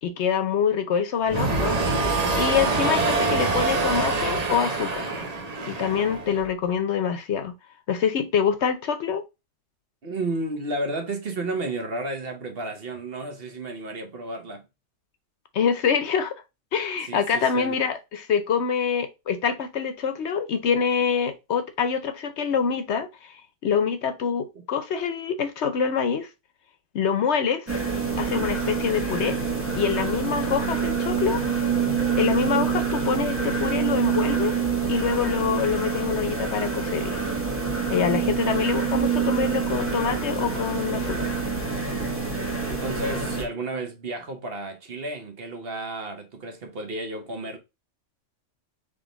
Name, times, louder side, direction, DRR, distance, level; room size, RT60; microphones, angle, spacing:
voice 1, 0.0-1.8 2.4-5.0 5.7-7.5 7.9-9.2 15.5-16.3 16.7-23.3 23.6-26.3 26.9-27.7 28.2-29.4 29.8-31.4 32.2-34.6 34.9-37.2 37.9-41.3, left 7 dB, 65° left, 0.9 m, -25 dB
sound 1, 1.3-6.5, right 3 dB, 35° right, 0.8 m, -25 dB
voice 2, 10.0-14.6 17.0-17.8 42.7-47.6, right 2 dB, 50° right, 1.2 m, -32 dB
sound 2, 27.7-43.4, right 6 dB, 10° right, 1.2 m, -26 dB
3.7 x 3.6 x 3.8 m
omnidirectional pair, 1.3 m